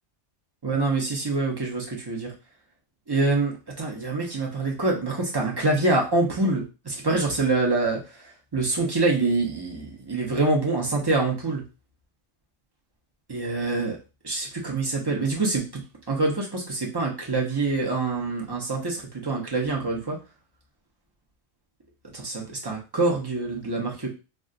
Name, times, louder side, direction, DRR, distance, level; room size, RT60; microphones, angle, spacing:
voice 1, 0.6-2.3 3.1-8.2 8.5-11.6 13.3-14.0 14.2-15.6 16.1-20.2 22.1-24.1, right 3 dB, 30° right, -1 dB, 0.5 m, -25 dB
2.4 x 2.2 x 3.7 m, 0.30 s
omnidirectional pair, 1.3 m